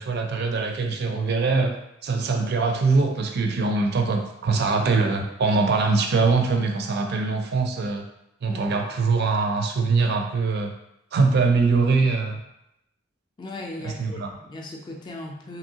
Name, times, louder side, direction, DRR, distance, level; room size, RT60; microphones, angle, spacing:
voice 1, 0.0-1.7 2.0-8.1 8.4-10.7 11.1-12.4 13.8-14.3, right 4 dB, 55° right, 3 dB, 0.4 m, -22 dB
voice 2, 13.4-15.6, left 1 dB, 20° left, 0 dB, 0.4 m, -37 dB
3.0 x 2.7 x 2.7 m, 0.82 s
head